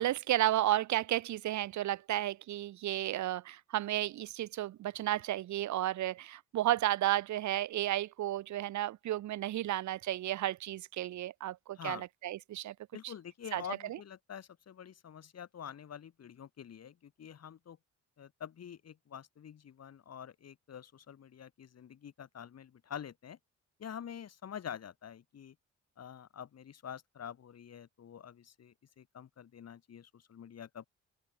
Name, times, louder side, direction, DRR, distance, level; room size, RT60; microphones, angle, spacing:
voice 1, 0.0-12.7 13.5-13.6 13.9-14.0, right 13 dB, 70° right, 1.0 m, -33 dB
voice 2, 11.7-12.1 12.9-17.8 18.2-23.4 23.8-25.6 26.0-30.9, left 8 dB, 55° left, 5.9 m, -47 dB
open air
cardioid pair, 90°, 30 cm